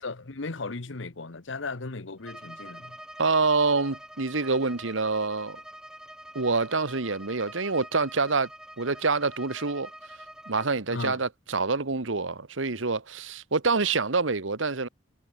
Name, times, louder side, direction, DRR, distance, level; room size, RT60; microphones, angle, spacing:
voice 1, 0.0-3.0 10.9-11.2, left 3 dB, 80° left, 1.2 m, -36 dB
Bowed string instrument, 2.2-10.8, right 1 dB, 5° right, 5.9 m, -45 dB
voice 2, 3.2-5.6 6.3-8.5 8.8-9.9 10.5-14.9, right 4 dB, 85° right, 1.4 m, -26 dB
head